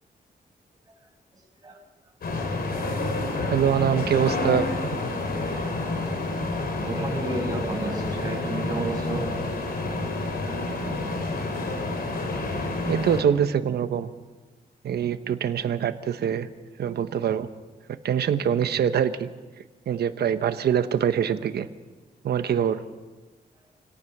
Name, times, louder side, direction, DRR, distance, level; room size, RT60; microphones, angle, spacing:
sound 1, 2.2-13.2, left 2 dB, 70° left, 4.0 m, -29 dB
voice 1, 3.5-4.7 12.9-14.1 14.8-16.5 16.8-17.5 18.0-19.3 19.9-21.7 22.2-22.8, right 8 dB, 85° right, 11 dB, 1.1 m, -24 dB
voice 2, 6.8-9.3, right 2 dB, 25° right, -1 dB, 6.9 m, -31 dB
27.5 x 17.5 x 6.1 m, 1.3 s
wide cardioid pair, 115°, 16 cm